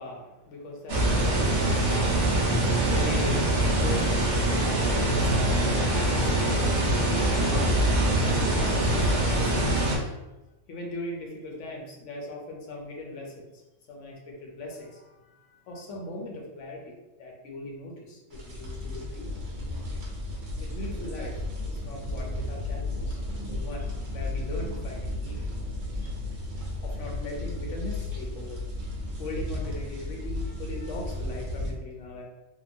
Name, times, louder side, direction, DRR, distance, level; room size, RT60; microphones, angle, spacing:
voice 1, 0.0-7.9 8.3-10.1 10.7-13.6 13.9-19.3 20.6-21.3 21.7-25.5 26.0-26.1 26.8-28.6 29.2-32.2, left 1 dB, 75° left, -1 dB, 1.0 m, -40 dB
sound 1, 0.9-10.0, right 1 dB, 50° right, 0.5 m, -24 dB
sound 2, 18.3-31.7, left 2 dB, 85° right, 1.1 m, -34 dB
2.8 x 2.3 x 2.5 m, 1.0 s
omnidirectional pair, 1.3 m